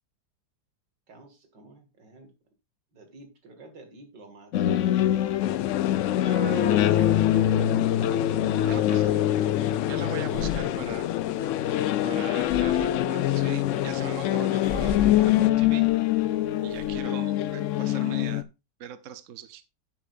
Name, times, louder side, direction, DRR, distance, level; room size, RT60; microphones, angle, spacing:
voice 1, 1.1-2.3 2.9-5.5 8.4-9.3 9.7-10.8, right 2 dB, 90° right, 5 dB, 2.8 m, -51 dB
sound 1, 4.5-18.4, left 12 dB, 70° left, 0.7 m, -24 dB
sound 2, 5.4-15.5, left 13 dB, 90° left, 1.3 m, -32 dB
voice 2, 6.2-7.1 8.6-9.1 9.8-11.1 12.0-15.9 16.6-18.4 18.8-19.6, right 10 dB, 55° right, 11 dB, 1.1 m, -41 dB
Breathing, 8.5-17.0, left 4 dB, 55° left, 1.8 m, -41 dB
9.9 x 8.9 x 2.5 m, 0.26 s
omnidirectional pair, 1.9 m